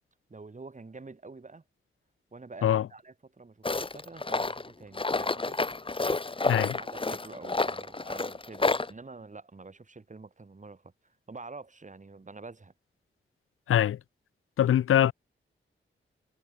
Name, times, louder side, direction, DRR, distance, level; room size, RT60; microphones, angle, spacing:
voice 1, 0.3-1.6 2.3-5.6 6.8-12.7, right 3 dB, 35° right, 3.0 m, -47 dB
Tools, 3.6-8.9, left 3 dB, 25° left, 1.0 m, -29 dB
voice 2, 6.5-6.8 13.7-14.0 14.6-15.1, left 10 dB, 90° left, 0.4 m, -23 dB
wide cardioid pair, 85°, 21 cm